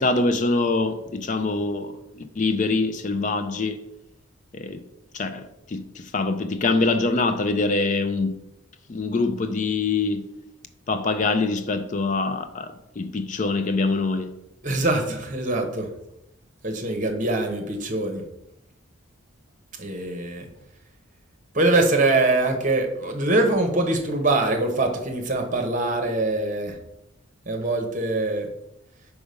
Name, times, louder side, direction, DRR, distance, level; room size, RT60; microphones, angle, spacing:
voice 1, 0.0-3.8 4.5-4.8 5.1-8.4 8.9-10.3 10.9-14.3, left 3 dB, 35° left, 0.4 m, -24 dB
voice 2, 14.6-15.9 16.6-18.2 19.8-20.5 21.5-26.8 27.5-28.5, right 2 dB, 40° right, 1.1 m, -23 dB
5.0 x 4.8 x 5.2 m
head